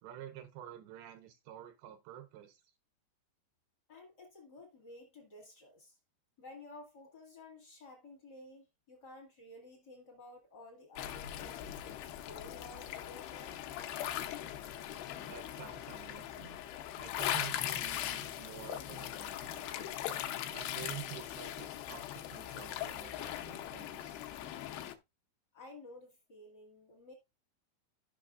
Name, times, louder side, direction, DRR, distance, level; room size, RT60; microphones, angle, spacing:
voice 1, 0.0-2.7 15.1-16.6 17.0-19.9 20.5-24.2, right 11 dB, 80° right, 2.7 m, -49 dB
voice 2, 3.9-6.0 6.4-11.7 12.2-13.6 25.5-27.1, left 2 dB, 50° left, 1.1 m, -53 dB
sound 1, 11.0-24.9, left 12 dB, 80° left, 2.4 m, -40 dB
14.5 x 5.8 x 2.4 m
omnidirectional pair, 5.5 m